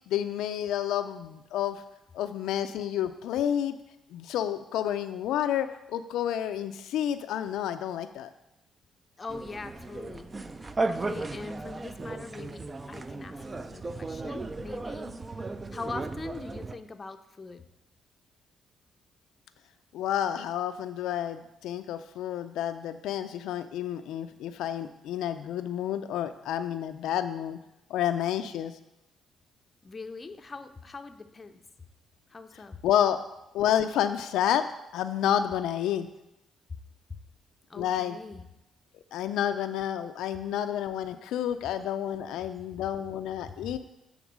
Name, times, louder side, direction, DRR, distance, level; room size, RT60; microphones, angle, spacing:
voice 1, 0.1-1.8 2.1-3.8 4.1-8.3 19.9-27.6 27.9-28.7 32.8-33.2 33.5-34.7 34.9-36.1 37.8-38.2 39.1-43.8, left 10 dB, 85° left, 9 dB, 0.3 m, -29 dB
voice 2, 9.2-10.3 10.9-15.1 15.7-17.6 29.8-31.6 32.3-32.8 37.1-37.2 37.7-38.4 43.6-43.8, left 3 dB, 30° left, 8 dB, 0.5 m, -42 dB
sound 1, 9.3-16.8, right 3 dB, 25° right, 0.4 m, -35 dB
7.1 x 3.6 x 6.0 m, 0.90 s
cardioid pair, 90°, 0 cm